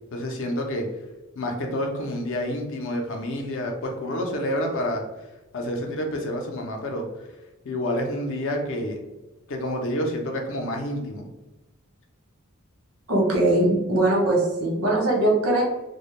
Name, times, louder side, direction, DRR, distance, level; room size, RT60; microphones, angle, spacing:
voice 1, 0.1-0.8 1.4-5.0 5.5-7.1 7.6-9.0 9.5-11.3, left 1 dB, 65° left, 2 dB, 0.5 m, -28 dB
voice 2, 13.1-15.6, right 1 dB, 85° right, -2 dB, 0.8 m, -21 dB
2.2 x 2.1 x 2.9 m, 1.0 s
head